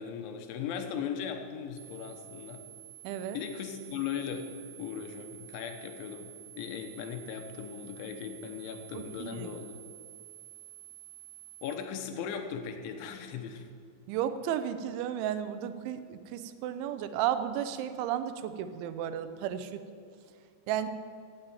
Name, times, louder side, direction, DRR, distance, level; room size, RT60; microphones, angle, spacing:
voice 1, 0.0-2.6 3.1-4.5 4.8-9.8 11.6-13.7, left 7 dB, 90° left, 6 dB, 3.6 m, -38 dB
sound 1, 1.8-11.8, right 13 dB, 70° right, 1.9 m, -50 dB
voice 2, 3.0-3.4 9.0-9.5 14.1-19.8 20.7-20.9, right 10 dB, 90° right, 11 dB, 3.2 m, -33 dB
15.5 x 7.6 x 8.9 m, 2.3 s
omnidirectional pair, 5.2 m